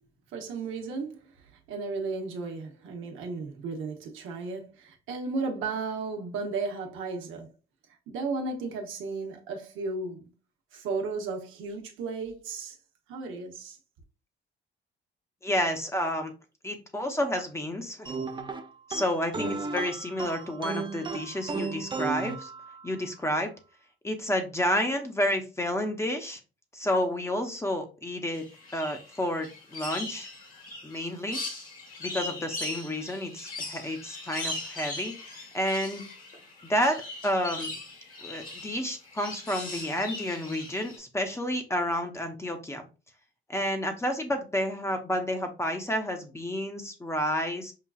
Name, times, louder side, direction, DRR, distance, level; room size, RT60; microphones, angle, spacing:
voice 1, 0.3-7.5 8.1-10.3 10.7-12.8 13.1-13.8, right 4 dB, 85° right, 0.9 m, -34 dB
voice 2, 15.4-16.3 16.6-18.1 18.9-22.5 22.8-23.5 24.0-26.4 26.7-28.4 28.7-30.3 30.8-31.4 32.0-36.0 36.6-37.7 38.2-42.9 43.5-47.7, left 1 dB, 15° left, 0.8 m, -30 dB
sound 1, 18.1-23.1, right 4 dB, 25° right, 0.5 m, -35 dB
sound 2, 28.3-41.0, left 2 dB, 45° left, 1.4 m, -40 dB
5.7 x 2.4 x 2.3 m
cardioid pair, 90°, 20 cm